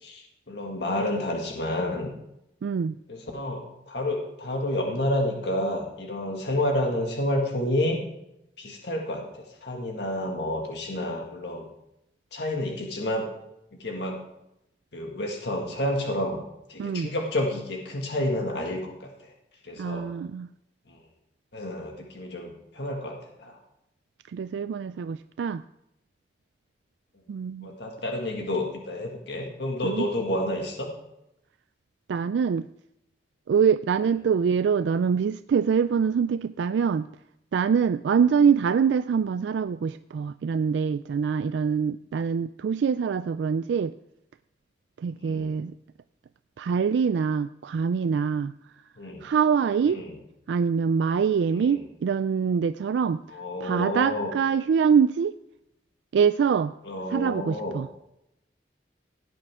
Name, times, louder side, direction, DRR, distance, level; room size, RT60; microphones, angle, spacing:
voice 1, 0.0-2.1 3.1-8.0 8.6-11.7 12.3-13.3 13.7-14.2 14.9-16.4 16.7-19.3 19.6-20.1 20.9-21.0 21.5-23.6 27.6-30.9 45.2-45.5 49.0-49.2 49.9-50.2 51.5-51.8 53.3-54.3 56.8-57.7, left 1 dB, 70° left, 1 dB, 1.8 m, -30 dB
voice 2, 2.6-2.9 16.8-17.1 19.8-20.5 24.3-25.6 27.3-27.7 29.8-30.1 32.1-32.6 33.5-37.1 37.5-43.9 45.0-45.7 46.6-48.5 49.2-50.0 50.5-53.2 53.6-55.3 56.1-56.7 57.1-57.9, right 6 dB, 75° right, 12 dB, 0.3 m, -24 dB
17.0 x 9.1 x 3.6 m, 0.85 s
head